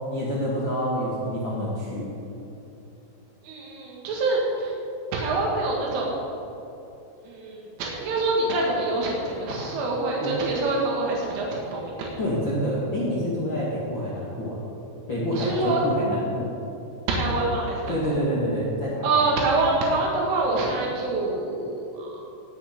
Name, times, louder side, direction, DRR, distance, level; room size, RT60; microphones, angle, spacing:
voice 1, 0.1-2.1 9.5-9.6 10.2-10.4 12.2-14.6 15.1-16.5 17.9-19.3, equal, 80° left, -7 dB, 1.0 m, -27 dB
voice 2, 3.4-4.7 5.1-6.2 7.3-12.1 15.3-15.8 17.1-18.2 19.0-22.1, right 2 dB, 80° right, -2 dB, 4.2 m, -25 dB
18.5 x 8.7 x 5.1 m, 2.9 s
omnidirectional pair, 5.6 m